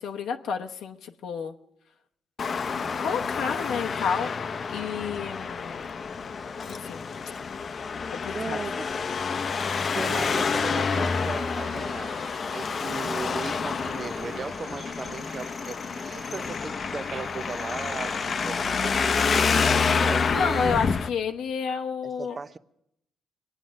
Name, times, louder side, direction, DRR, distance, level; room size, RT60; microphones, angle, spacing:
voice 1, 0.0-1.5 3.0-4.3 4.7-5.9 6.6-7.0 8.1-8.6 20.3-22.4, left 6 dB, 80° left, 0.9 m, -30 dB
Traffic noise roadway noise, 2.4-21.1, left 5 dB, 45° left, 0.7 m, -28 dB
voice 2, 8.3-8.9 9.9-12.2 12.5-20.8 22.0-22.6, right 4 dB, 35° right, 0.6 m, -37 dB
sound 1, 9.4-19.6, right 5 dB, 60° right, 1.1 m, -49 dB
23.0 x 9.1 x 6.3 m
cardioid pair, 90°, 0 cm